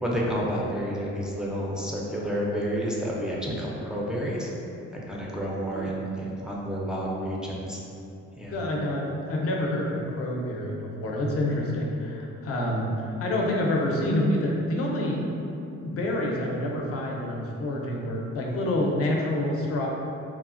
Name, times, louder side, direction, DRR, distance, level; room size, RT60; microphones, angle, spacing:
voice 1, 0.0-4.5 4.9-7.8 8.4-8.6, equal, 5° right, -5 dB, 0.4 m, -30 dB
voice 2, 8.5-15.2 15.8-19.9, left 1 dB, 50° left, -1 dB, 0.5 m, -27 dB
3.1 x 2.1 x 2.4 m, 2.8 s
cardioid pair, 90°, 30 cm